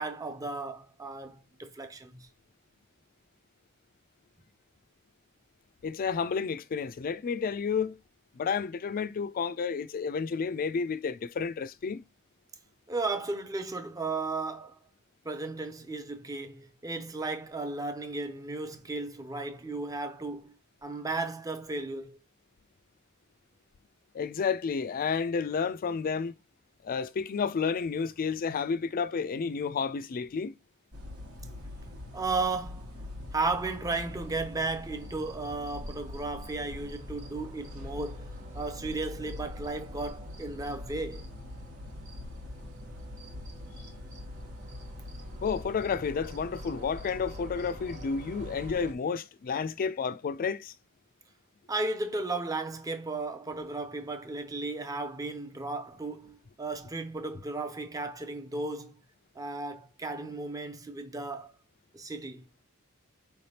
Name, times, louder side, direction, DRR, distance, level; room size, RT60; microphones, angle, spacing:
voice 1, 0.0-2.3 12.9-14.8 15.2-20.5 20.8-22.2 32.1-32.9 33.3-38.3 38.5-41.2 51.7-59.0 59.4-61.5 61.9-62.5, right 3 dB, 15° right, 0.5 m, -35 dB
voice 2, 5.8-8.0 8.4-12.0 24.1-26.3 26.8-30.5 45.4-50.7, left 5 dB, 40° left, 0.3 m, -31 dB
sound 1, 30.9-48.9, left 1 dB, 85° right, 1.2 m, -43 dB
sound 2, 33.8-48.9, right 4 dB, 35° right, 1.0 m, -54 dB
4.7 x 3.3 x 2.8 m
head